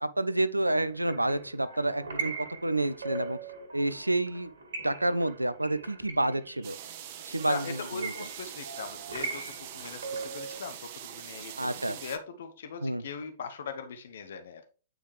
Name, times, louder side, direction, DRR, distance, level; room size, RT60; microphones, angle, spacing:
voice 1, 0.0-3.4 3.7-4.5 4.8-6.8 7.2-8.1 11.6-12.0 12.8-13.0, right 1 dB, 85° right, 0.5 m, -29 dB
sound 1, 0.8-10.6, right 4 dB, 65° right, 1.9 m, -41 dB
sound 2, 6.6-12.2, right 10 dB, 40° right, 0.8 m, -43 dB
voice 2, 7.4-14.6, left 5 dB, 55° left, 0.8 m, -40 dB
9.1 x 4.8 x 3.2 m
figure-of-eight pair, 110°, 0 cm